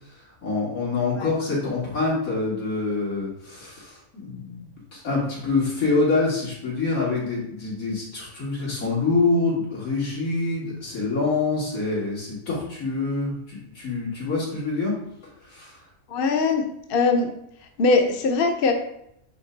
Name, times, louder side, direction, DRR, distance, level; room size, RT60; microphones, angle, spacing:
voice 1, 0.1-14.9 15.4-15.8, left 3 dB, 90° left, -6 dB, 2.9 m, -26 dB
voice 2, 16.1-16.6 16.9-17.3 17.8-18.7, left 4 dB, 50° left, 4 dB, 0.9 m, -20 dB
8.8 x 3.4 x 3.9 m, 0.75 s
omnidirectional pair, 1.4 m